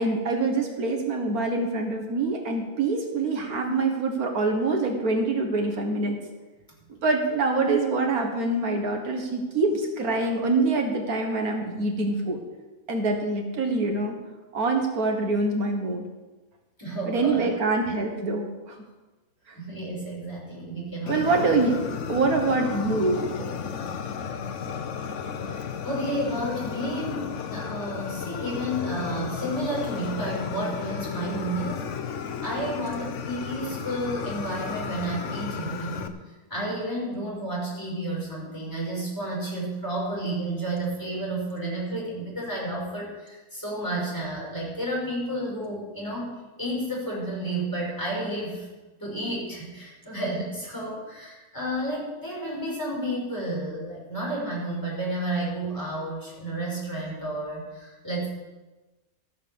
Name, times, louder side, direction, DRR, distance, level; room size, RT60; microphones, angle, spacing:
voice 1, 0.0-6.2 6.9-12.4 12.9-14.2 14.5-16.0 17.1-18.8 19.5-19.6 21.1-21.7 22.1-23.6, right 3 dB, 75° right, 3 dB, 1.9 m, -25 dB
voice 2, 16.8-17.4 19.5-21.4 25.5-36.2 36.5-48.7 49.0-58.3, right 1 dB, 15° left, -5 dB, 5.2 m, -31 dB
Fire, 21.1-36.1, left 6 dB, 60° left, 1.1 m, -33 dB
14.5 x 7.1 x 7.0 m, 1.2 s
omnidirectional pair, 1.6 m